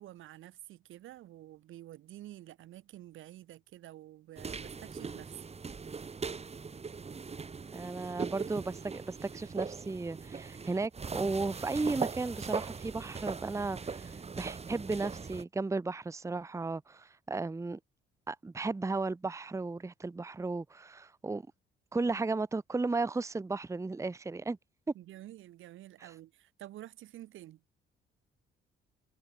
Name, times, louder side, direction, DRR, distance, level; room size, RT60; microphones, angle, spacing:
voice 1, 0.0-5.4 24.9-27.6, right 14 dB, 85° right, 3.9 m, -49 dB
sound 1, 4.4-15.4, right 5 dB, 30° right, 2.2 m, -40 dB
voice 2, 7.7-17.8 18.3-21.4 21.9-24.6 26.0-26.1, right 3 dB, 15° right, 0.8 m, -35 dB
cardioid pair, 90°, 20 cm